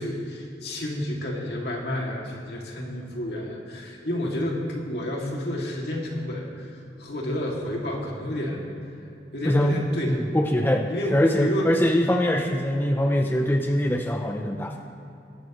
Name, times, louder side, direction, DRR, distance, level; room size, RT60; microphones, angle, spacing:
voice 1, 0.0-8.6 9.3-10.3 10.9-11.7, left 1 dB, 65° left, -2 dB, 2.3 m, -30 dB
voice 2, 9.4-14.8, equal, 10° left, 3 dB, 0.5 m, -23 dB
22.5 x 11.5 x 3.1 m, 2.8 s
head